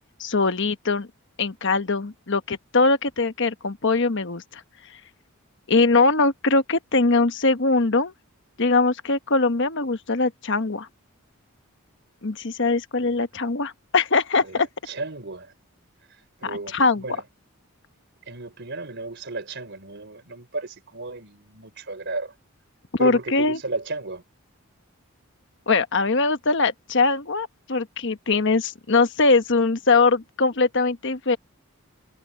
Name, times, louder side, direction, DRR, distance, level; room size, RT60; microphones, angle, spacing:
voice 1, 0.2-1.1 1.4-4.6 5.7-8.1 8.6-10.9 12.2-14.7 16.4-17.0 22.9-23.6 25.7-31.4, left 3 dB, 55° left, 1.2 m, -22 dB
voice 2, 14.9-15.5 16.4-16.8 17.0-17.2 18.3-22.3 23.0-24.2, right 3 dB, 55° right, 3.7 m, -34 dB
head